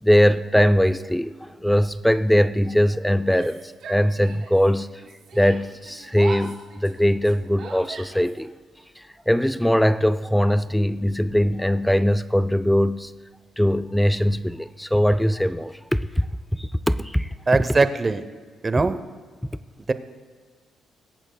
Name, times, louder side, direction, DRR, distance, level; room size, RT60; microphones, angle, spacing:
voice 1, 0.0-5.0 5.3-8.5 9.0-13.1 13.6-15.8 16.2-16.3 16.5-17.3, equal, 5° left, 14 dB, 0.4 m, -21 dB
Yell, 3.2-4.7 4.9-8.4, right 5 dB, 75° right, 2.5 m, -40 dB
voice 2, 17.5-18.2 18.6-19.0 19.8-19.9, right 3 dB, 25° right, 12 dB, 0.7 m, -21 dB
22.0 x 8.7 x 2.3 m, 1.5 s
cardioid pair, 90°, 0 cm